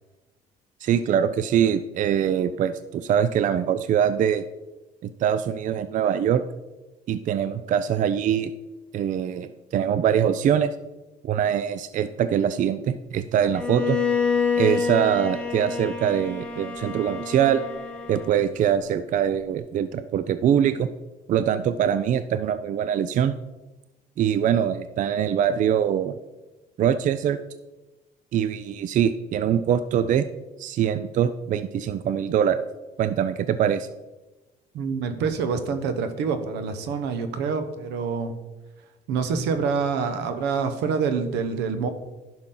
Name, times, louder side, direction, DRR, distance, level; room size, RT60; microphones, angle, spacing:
voice 1, 0.8-4.4 5.0-6.4 7.1-8.5 8.9-10.7 11.2-14.0 14.6-17.6 18.1-20.9 21.3-23.3 24.2-26.1 26.8-27.4 28.3-30.3 30.6-32.6 33.0-33.9, right 9 dB, 50° right, 12 dB, 0.4 m, -23 dB
Bowed string instrument, 13.5-18.6, left 5 dB, 5° left, 1.3 m, -27 dB
voice 2, 34.7-38.4 39.1-41.9, right 5 dB, 85° right, 9 dB, 1.0 m, -26 dB
10.5 x 6.1 x 3.8 m, 1.1 s
cardioid pair, 110°, 17 cm